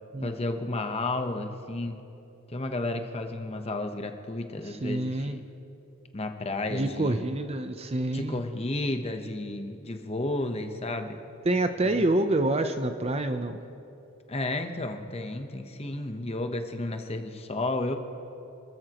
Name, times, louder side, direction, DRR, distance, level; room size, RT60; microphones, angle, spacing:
voice 1, 0.2-2.0 2.5-5.4 6.1-7.3 8.1-11.2 11.8-12.0 14.3-18.0, left 2 dB, 30° left, 6 dB, 0.9 m, -32 dB
voice 2, 4.8-5.4 6.7-8.4 11.5-13.6, right 2 dB, 30° right, 8 dB, 0.6 m, -27 dB
29.0 x 14.0 x 3.0 m, 2.8 s
head